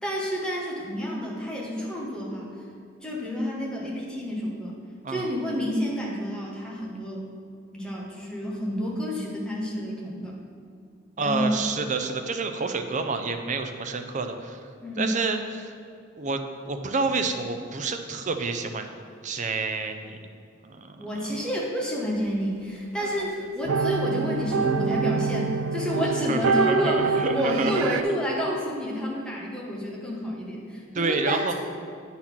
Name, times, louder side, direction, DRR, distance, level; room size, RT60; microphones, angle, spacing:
voice 1, 0.0-2.5 3.0-4.8 5.1-7.3 7.7-10.4 11.2-11.6 14.8-15.2 21.0-31.5, equal, 5° left, -4 dB, 1.3 m, -29 dB
voice 2, 11.2-14.6 15.0-15.7 16.2-18.9 19.2-20.2 20.6-21.1 26.3-27.7 30.9-31.5, right 4 dB, 40° right, 6 dB, 0.5 m, -29 dB
sound 1, 23.0-28.0, right 5 dB, 90° right, 0.3 m, -26 dB
8.8 x 4.1 x 5.9 m, 2.3 s
head